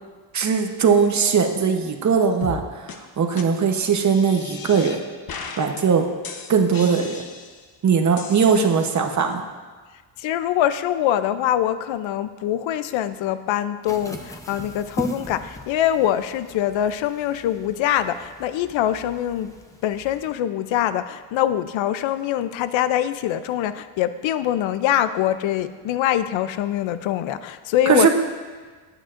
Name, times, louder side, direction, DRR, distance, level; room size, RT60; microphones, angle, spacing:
voice 1, 0.3-5.0 5.6-6.1 6.5-7.2 7.8-9.4 27.9-28.1, right 6 dB, 35° right, 4 dB, 0.9 m, -20 dB
sound 1, 2.4-2.6 2.9-3.0 3.4-3.5 3.9-5.0 5.3-5.8 6.2-7.6 8.2-9.1, left 5 dB, 45° left, 1.0 m, -36 dB
voice 2, 10.2-19.5 19.8-28.1, left 11 dB, 70° left, 13 dB, 0.6 m, -23 dB
sound 2, 13.9-20.3, equal, 5° left, 0.7 m, -38 dB
18.0 x 9.0 x 2.5 m, 1.4 s
cardioid pair, 140°, 48 cm